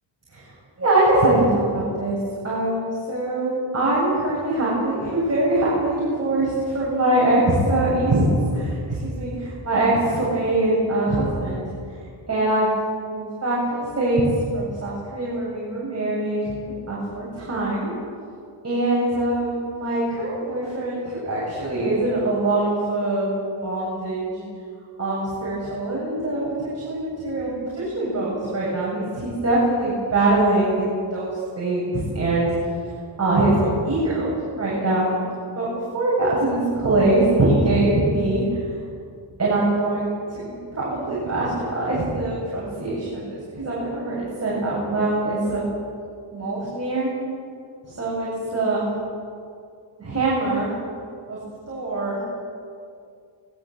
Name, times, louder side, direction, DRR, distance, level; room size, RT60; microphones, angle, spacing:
voice 1, 0.8-1.5 1.7-2.2 2.4-8.2 8.5-11.7 12.3-12.7 13.1-14.2 14.5-16.4 16.9-17.9 18.6-24.4 25.0-32.6 33.2-35.2 35.5-35.7 35.9-38.6 39.4-40.1 40.3-45.7 46.3-47.1 47.9-48.9 50.0-50.7 51.3-51.4 51.7-52.2, right 2 dB, 35° right, -6 dB, 7.4 m, -23 dB
23.0 x 20.0 x 7.9 m, 2.3 s
wide cardioid pair, 150°, 46 cm